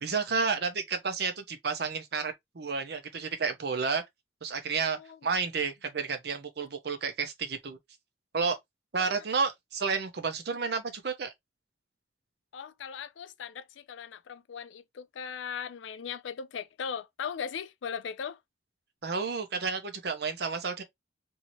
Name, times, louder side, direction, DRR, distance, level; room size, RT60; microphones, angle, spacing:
voice 1, 0.0-4.0 4.4-7.8 8.3-8.6 8.9-11.3 19.0-20.8, right 5 dB, 60° right, 0.6 m, -31 dB
voice 2, 4.9-5.2 9.0-9.1 12.5-18.4, left 7 dB, 85° left, 0.4 m, -38 dB
2.7 x 2.7 x 2.9 m
head